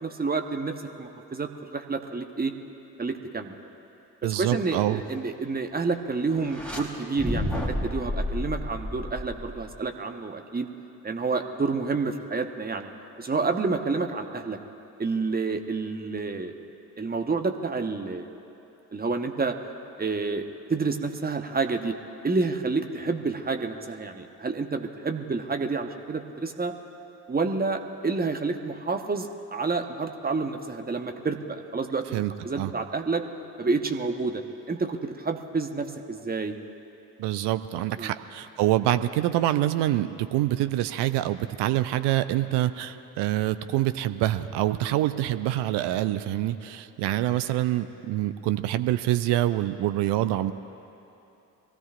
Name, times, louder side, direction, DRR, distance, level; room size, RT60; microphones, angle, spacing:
voice 1, 0.0-2.5 3.0-3.5 4.2-10.7 11.0-12.9 13.2-14.6 15.0-16.5 17.0-18.3 18.9-19.5 20.0-21.9 22.2-26.7 27.3-33.2 33.6-36.6 38.0-38.1, right 4 dB, 20° right, 5 dB, 1.2 m, -29 dB
voice 2, 4.2-5.0 32.1-32.7 37.2-50.5, right 14 dB, 55° right, 11 dB, 0.7 m, -26 dB
sound 1, 6.4-6.8 7.2-9.7, left 1 dB, ahead, 3.7 m, -31 dB
24.0 x 16.5 x 2.5 m, 2.9 s
figure-of-eight pair, 40°, 49 cm